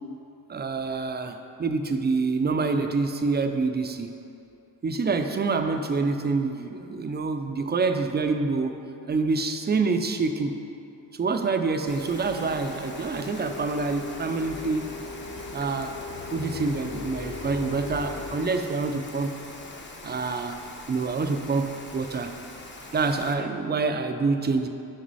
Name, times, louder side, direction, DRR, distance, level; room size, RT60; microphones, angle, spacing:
voice 1, 0.5-4.1 4.8-8.8 9.1-10.6 11.2-14.9 15.5-15.9 16.3-19.4 20.0-20.6 20.9-22.3 22.9-24.7, right 4 dB, 25° right, 6 dB, 0.4 m, -26 dB
Rain, 11.9-23.3, left 2 dB, 25° left, 0.7 m, -43 dB
Printer, 12.1-18.5, left 3 dB, 50° left, 1.0 m, -39 dB
6.3 x 5.3 x 4.0 m, 2.7 s
cardioid pair, 80°, 44 cm